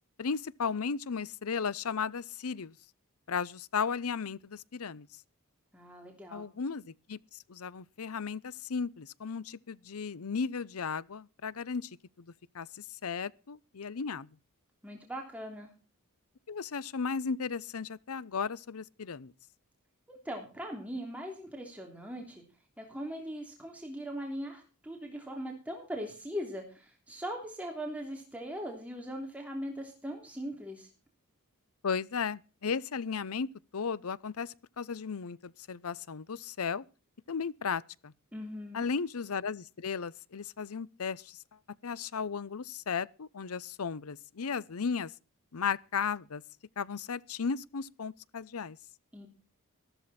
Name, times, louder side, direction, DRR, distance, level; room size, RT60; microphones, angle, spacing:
voice 1, 0.2-2.7 3.3-5.1 6.3-7.2 7.5-11.9 12.2-14.3 16.5-19.3 31.8-33.5 33.7-36.8 37.3-38.1 38.7-41.4 41.8-45.1 45.5-46.4 46.8-48.8, left 5 dB, 80° left, 0.7 m, -35 dB
voice 2, 5.7-6.5 14.8-15.7 20.1-22.4 22.8-30.9 38.3-38.9 49.1-49.3, equal, 5° right, 3.1 m, -40 dB
14.0 x 13.5 x 4.3 m
head